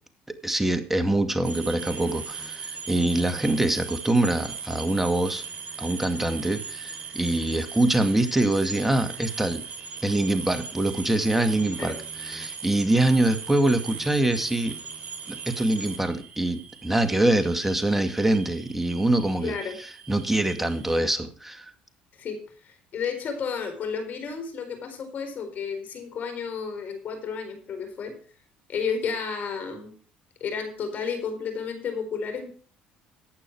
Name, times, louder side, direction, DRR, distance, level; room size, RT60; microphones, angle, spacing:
voice 1, 0.3-5.4 5.8-9.7 10.0-14.8 15.3-21.7, right 1 dB, 5° right, 8 dB, 2.1 m, -24 dB
sound 1, 1.4-21.0, right 6 dB, 45° right, 3.8 m, -39 dB
voice 2, 19.4-19.8 22.1-22.4 22.6-28.1 28.7-29.9 30.4-32.5, left 6 dB, 55° left, 7 dB, 4.4 m, -32 dB
15.0 x 9.0 x 4.7 m, 0.44 s
supercardioid pair, 75°, 3 cm